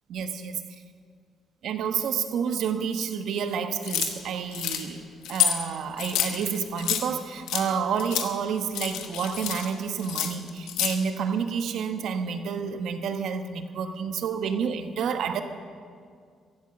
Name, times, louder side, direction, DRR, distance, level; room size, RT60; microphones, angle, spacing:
voice 1, 0.1-0.6 1.6-5.0 5.3-15.4, right 6 dB, 75° right, 8 dB, 1.1 m, -29 dB
sound 1, 3.8-4.1 4.5-4.8 5.2-5.6 6.0-7.0 7.5-7.7 8.0-8.3 8.6-9.7 10.0-10.9, left 9 dB, 90° left, 1.2 m, -28 dB
15.5 x 11.5 x 7.5 m, 2.1 s
cardioid pair, 90°, 0 cm